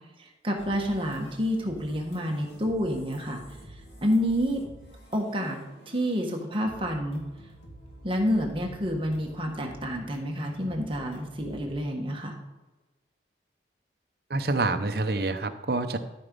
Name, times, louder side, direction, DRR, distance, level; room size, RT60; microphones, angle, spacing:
voice 1, 0.2-3.4 4.0-4.6 5.1-7.2 8.0-12.3, equal, 30° right, 1 dB, 1.5 m, -28 dB
sound 1, 0.6-11.7, equal, 90° left, 2.5 m, -49 dB
voice 2, 14.3-16.0, right 2 dB, 55° right, 7 dB, 0.8 m, -27 dB
13.0 x 5.1 x 5.4 m, 1.2 s
head